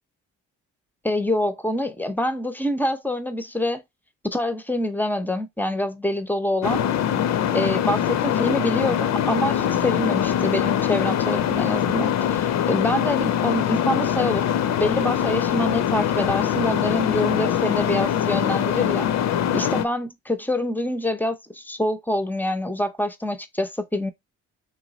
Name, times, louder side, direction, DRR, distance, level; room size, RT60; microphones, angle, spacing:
voice 1, 1.0-3.8 4.2-6.9 7.5-14.4 14.8-19.1 19.5-24.1, left 1 dB, 5° left, 0.6 m, -26 dB
sound 1, 6.6-19.8, left 9 dB, 60° left, 0.5 m, -23 dB
3.4 x 3.0 x 3.8 m
cardioid pair, 90°, 30 cm